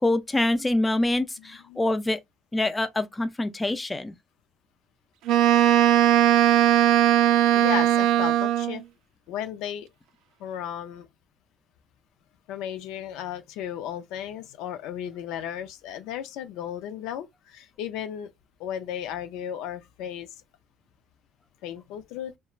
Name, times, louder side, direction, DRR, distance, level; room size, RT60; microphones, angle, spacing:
voice 1, 0.0-2.2 2.5-4.1, left 2 dB, 15° left, 0.3 m, -25 dB
voice 2, 1.4-1.8 7.5-8.8 9.3-9.9 10.4-11.1 12.5-18.3 18.6-20.3 21.6-22.3, left 10 dB, 85° left, 0.4 m, -35 dB
Wind instrument woodwind instrument, 5.3-8.8, right 11 dB, 75° right, 0.3 m, -19 dB
3.0 x 2.1 x 2.3 m
cardioid pair, 125°, 0 cm